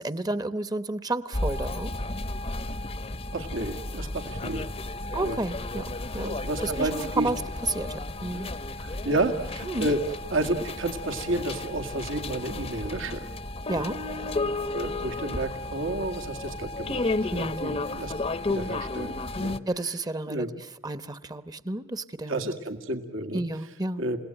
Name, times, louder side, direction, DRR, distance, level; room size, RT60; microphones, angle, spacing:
voice 1, 0.0-1.9 5.1-8.5 9.6-9.9 13.7-14.0 17.3-17.7 19.7-22.5 23.3-24.1, right 2 dB, 20° right, 14 dB, 0.9 m, -32 dB
sound 1, 1.3-19.6, left 2 dB, 30° left, 0.8 m, -33 dB
voice 2, 3.3-4.6 5.2-5.4 6.2-7.3 8.4-8.5 9.0-10.0 10.3-13.3 13.7-13.9 14.7-18.1 18.5-19.6 20.3-20.5 22.3-23.4 24.0-24.2, right 2 dB, 75° right, 5 dB, 2.0 m, -31 dB
29.5 x 17.5 x 9.0 m, 0.86 s
head